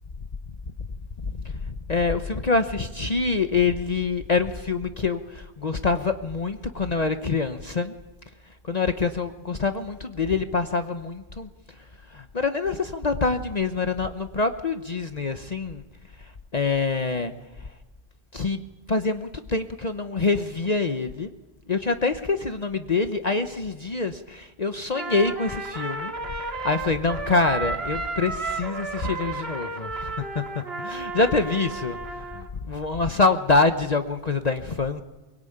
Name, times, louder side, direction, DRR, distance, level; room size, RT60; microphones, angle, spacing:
voice 1, 1.6-7.9 8.6-11.5 12.1-15.8 16.2-17.3 18.3-18.6 18.9-21.3 21.7-26.1 26.4-32.0 32.3-35.0, left 4 dB, 40° left, 7 dB, 1.0 m, -25 dB
Trumpet, 24.9-32.5, right 3 dB, 75° right, 2.5 m, -33 dB
23.5 x 22.5 x 8.8 m, 1.2 s
omnidirectional pair, 1.0 m